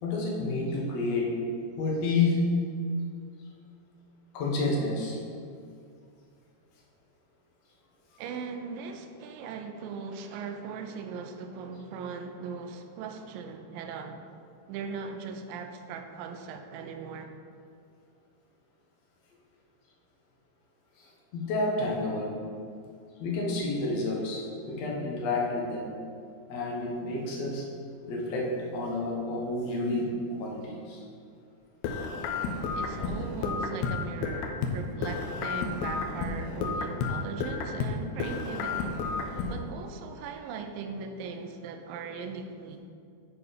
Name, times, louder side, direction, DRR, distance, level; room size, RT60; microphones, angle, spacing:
voice 1, 0.0-1.3 1.8-2.4 4.3-5.2 21.0-22.3 23.2-25.9 26.5-27.6 28.1-28.5 28.7-30.1 30.4-31.0, left 3 dB, 65° left, -3 dB, 1.8 m, -30 dB
voice 2, 8.2-14.2 14.7-17.3 32.7-38.9 39.5-42.8, right 5 dB, 85° right, 6 dB, 2.0 m, -39 dB
sound 1, 31.8-34.8 35.0-38.0 38.2-39.6, left 4 dB, 80° left, 2.4 m, -32 dB
8.2 x 4.9 x 5.0 m, 2.4 s
omnidirectional pair, 4.7 m